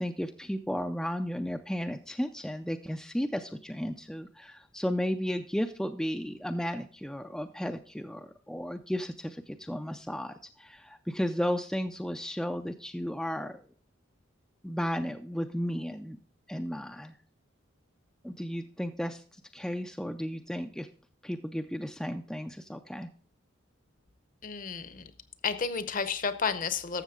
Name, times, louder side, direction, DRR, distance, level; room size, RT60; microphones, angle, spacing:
voice 1, 0.0-13.6 14.6-16.2 16.5-17.1 18.2-20.9 21.2-23.1, equal, 5° left, 6 dB, 0.3 m, -34 dB
voice 2, 24.4-25.1 25.4-27.0, left 5 dB, 45° left, 12 dB, 0.7 m, -31 dB
12.5 x 7.2 x 3.7 m, 0.43 s
head